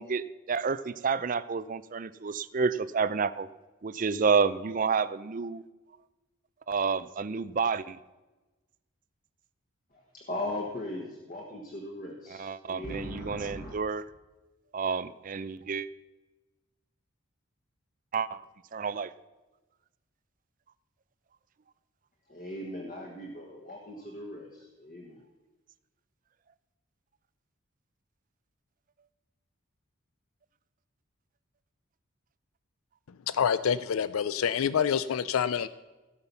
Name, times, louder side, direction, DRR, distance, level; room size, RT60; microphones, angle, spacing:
voice 1, 0.0-3.5 3.8-5.6 6.7-8.0 12.3-14.0 14.7-15.9 18.1-18.4 18.7-19.1, right 5 dB, 40° right, 0.4 m, -29 dB
voice 2, 9.9-13.7 22.3-25.2, left 1 dB, 40° left, 1.4 m, -39 dB
voice 3, 33.3-35.7, left 7 dB, 80° left, 0.4 m, -27 dB
16.5 x 5.8 x 6.9 m
head